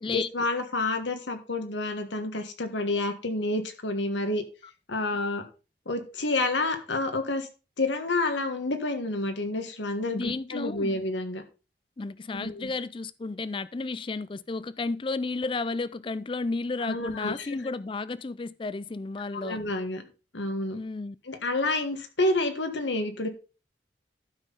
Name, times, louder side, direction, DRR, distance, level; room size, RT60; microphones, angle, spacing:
voice 1, 0.1-4.4 4.9-5.4 5.8-7.5 7.8-11.4 12.3-12.7 16.8-17.6 19.3-20.0 20.3-20.8 21.3-23.3, left 2 dB, 90° left, 1.5 m, -29 dB
voice 2, 10.1-11.0 12.0-19.6 20.7-21.2, left 3 dB, 30° left, 0.4 m, -32 dB
12.0 x 5.7 x 4.0 m
head